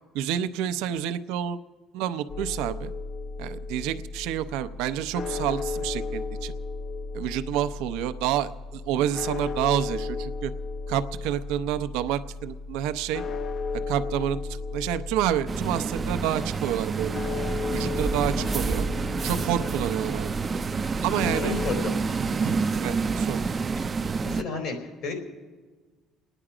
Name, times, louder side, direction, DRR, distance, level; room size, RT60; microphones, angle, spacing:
voice 1, 0.1-1.6 1.9-2.9 3.4-6.5 7.1-10.5 10.9-13.2 13.9-17.2 17.7-18.9 19.2-20.3 21.0-21.6 22.4-23.4, right 11 dB, 90° right, 10 dB, 0.6 m, -29 dB
sound 1, 2.3-21.7, left 3 dB, 50° left, 0.6 m, -34 dB
sound 2, 15.5-24.4, right 4 dB, 30° right, 0.4 m, -28 dB
voice 2, 21.4-21.9 22.2-22.3 23.8-23.9 24.2-25.1, left 4 dB, 75° left, 3 dB, 4.3 m, -32 dB
29.5 x 10.0 x 5.0 m, 1.4 s
cardioid pair, 100°, 0 cm